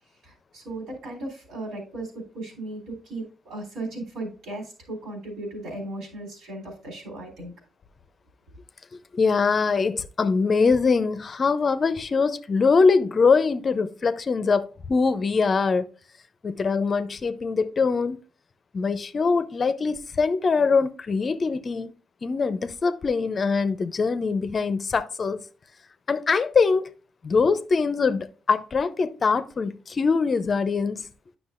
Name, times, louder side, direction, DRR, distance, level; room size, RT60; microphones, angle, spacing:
voice 1, 0.2-7.5, right 2 dB, 80° right, 3.4 m, -36 dB
voice 2, 9.1-15.9 16.4-18.2 18.7-21.9 22.2-25.4 26.1-26.9 27.2-31.1, left 4 dB, 40° left, 0.5 m, -23 dB
9.7 x 6.0 x 2.5 m
cardioid pair, 90°, 0 cm